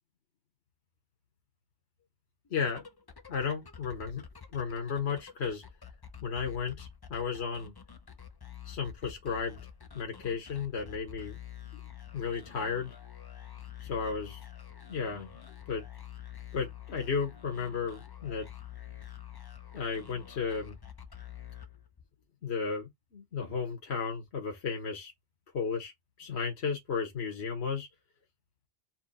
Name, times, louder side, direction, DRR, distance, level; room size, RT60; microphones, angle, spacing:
voice 1, 2.5-2.8 3.3-4.3 4.5-5.6 6.2-7.7 8.6-9.6 9.9-11.4 12.1-12.9 13.8-14.4 14.9-15.3 15.7-15.9 16.5-18.5 19.7-20.8 22.4-25.1 25.5-25.9 26.2-27.9, left 5 dB, 70° left, 1.5 m, -34 dB
sound 1, 2.5-22.2, left 9 dB, 30° left, 0.5 m, -48 dB
4.4 x 2.7 x 4.0 m
omnidirectional pair, 1.1 m